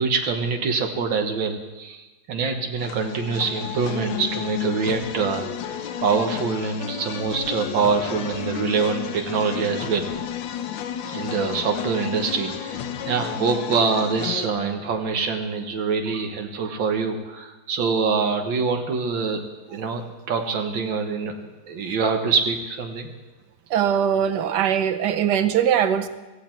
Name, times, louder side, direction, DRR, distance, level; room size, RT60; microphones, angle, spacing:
voice 1, 0.0-10.1 11.1-19.4 19.7-23.1, right 5 dB, 85° right, 4 dB, 2.0 m, -25 dB
sound 1, 2.8-14.5, left 9 dB, 90° left, 1.6 m, -32 dB
voice 2, 23.7-26.1, right 9 dB, 70° right, 10 dB, 1.4 m, -21 dB
16.0 x 15.0 x 4.5 m, 1.2 s
omnidirectional pair, 2.0 m